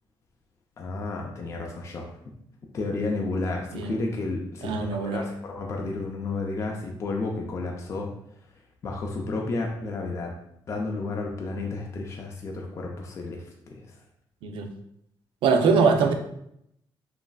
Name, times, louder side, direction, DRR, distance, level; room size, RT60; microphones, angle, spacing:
voice 1, 0.8-2.1 2.7-8.1 8.8-10.3 10.7-13.4 13.7-13.8, left 3 dB, 35° left, 0 dB, 0.3 m, -31 dB
voice 2, 4.6-5.2 14.4-14.7 15.4-16.1, right 5 dB, 80° right, 5 dB, 0.4 m, -22 dB
3.0 x 2.4 x 2.2 m, 0.76 s
cardioid pair, 125°, 8 cm